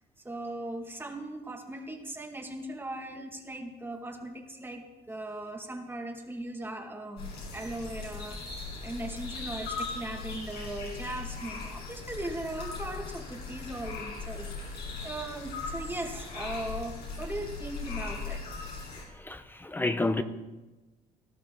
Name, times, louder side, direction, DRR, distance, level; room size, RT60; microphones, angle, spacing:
voice 1, 0.2-18.4, right 1 dB, 15° right, 2.1 m, -39 dB
sound 1, 7.2-19.0, left 4 dB, 70° left, 6.2 m, -39 dB
voice 2, 19.2-20.2, left 2 dB, 10° left, 0.8 m, -29 dB
18.5 x 12.0 x 3.9 m
cardioid pair, 110°, 17 cm